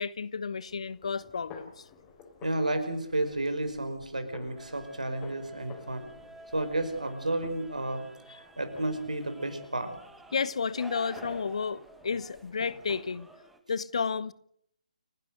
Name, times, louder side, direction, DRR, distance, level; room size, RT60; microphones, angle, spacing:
voice 1, 0.0-1.9 8.3-8.4 10.3-13.3 13.7-14.3, left 5 dB, 55° left, 1.1 m, -32 dB
sound 1, 0.7-13.3, left 5 dB, 20° left, 4.0 m, -53 dB
voice 2, 2.4-6.1 6.5-9.9, right 1 dB, 75° right, 5.3 m, -32 dB
sound 2, 4.6-13.6, right 2 dB, 5° right, 1.8 m, -52 dB
29.5 x 11.5 x 7.9 m
figure-of-eight pair, 140°, 4 cm